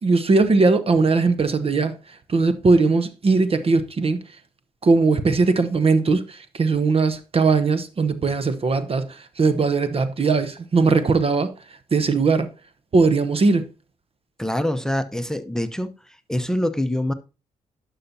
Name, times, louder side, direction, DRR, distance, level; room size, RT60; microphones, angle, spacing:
voice 1, 0.0-1.9 2.3-4.2 4.8-11.5 11.9-12.5 12.9-13.7, right 4 dB, 40° right, 0.9 m, -19 dB
voice 2, 14.4-15.9 16.3-17.1, left 1 dB, 5° left, 0.8 m, -24 dB
11.5 x 5.7 x 2.8 m
supercardioid pair, 55°, 15 cm